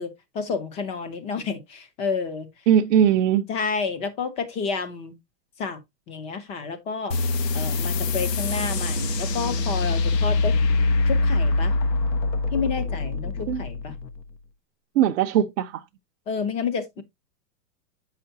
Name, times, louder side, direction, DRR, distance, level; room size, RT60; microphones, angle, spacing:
voice 1, 0.0-2.5 3.5-5.2 5.6-5.8 6.1-7.1 7.5-10.6 11.1-11.8 12.5-14.0 16.3-17.0, left 5 dB, 15° left, 0.4 m, -30 dB
voice 2, 2.7-3.5 13.5-13.6 15.0-15.8, right 9 dB, 50° right, 0.5 m, -20 dB
sound 1, 7.1-14.2, left 3 dB, 90° left, 1.1 m, -24 dB
7.7 x 5.7 x 2.6 m
hypercardioid pair, 140°, 49 cm